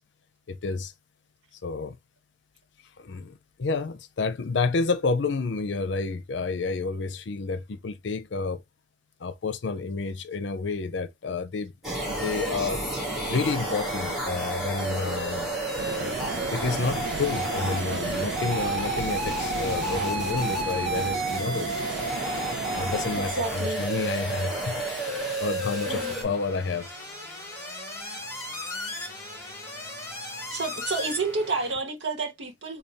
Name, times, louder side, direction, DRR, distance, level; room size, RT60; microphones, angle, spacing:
voice 1, 0.5-0.9 1.6-2.0 3.0-8.6 9.2-11.7 12.0-12.8 13.3-15.8 16.5-21.7 22.7-24.8 25.4-26.9, left 4 dB, 80° left, 0.5 m, -30 dB
sound 1, 11.8-26.2, right 1 dB, ahead, 1.7 m, -30 dB
sound 2, 15.8-23.3, right 4 dB, 65° right, 0.5 m, -34 dB
sound 3, 22.7-31.7, left 2 dB, 15° left, 1.4 m, -39 dB
voice 2, 23.3-23.8 25.9-26.3 30.5-32.8, right 3 dB, 85° right, 1.1 m, -30 dB
4.1 x 2.3 x 3.4 m
head